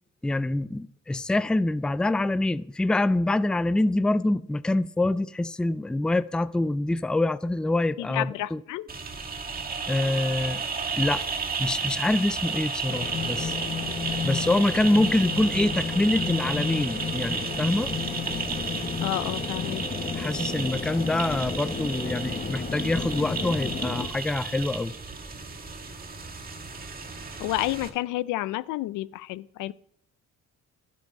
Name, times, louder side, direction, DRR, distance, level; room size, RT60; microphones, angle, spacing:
voice 1, 0.2-8.6 9.9-10.6 11.0-11.2 11.6-13.6 14.2-17.9 20.2-25.0, left 2 dB, 5° left, 0.3 m, -25 dB
voice 2, 8.0-8.9 19.0-19.8 27.4-29.7, left 16 dB, 90° left, 0.5 m, -30 dB
sound 1, 8.9-27.9, right 5 dB, 30° right, 2.0 m, -33 dB
sound 2, 12.9-24.1, left 5 dB, 30° left, 1.1 m, -33 dB
12.0 x 8.4 x 5.3 m
cardioid pair, 90°, 30 cm